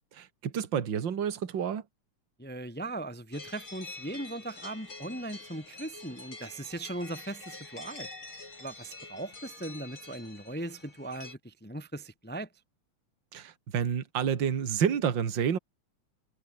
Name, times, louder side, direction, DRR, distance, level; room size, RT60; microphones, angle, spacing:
voice 1, 0.2-1.8 13.3-15.6, right 8 dB, 40° right, 2.3 m, -29 dB
voice 2, 2.4-8.1 8.6-12.5, right 1 dB, 5° left, 1.3 m, -39 dB
sound 1, 3.3-11.3, left 3 dB, 40° left, 7.1 m, -46 dB
omnidirectional pair, 3.6 m